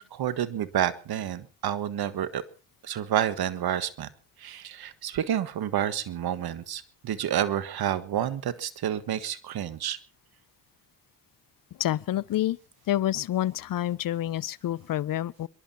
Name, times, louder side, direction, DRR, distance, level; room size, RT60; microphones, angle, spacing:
voice 1, 0.0-2.4 2.8-4.1 4.4-10.0, right 10 dB, 65° right, 1.6 m, -29 dB
voice 2, 11.8-12.6 12.9-15.5, left 13 dB, 55° left, 0.7 m, -28 dB
26.0 x 11.5 x 4.3 m
supercardioid pair, 55°, 39 cm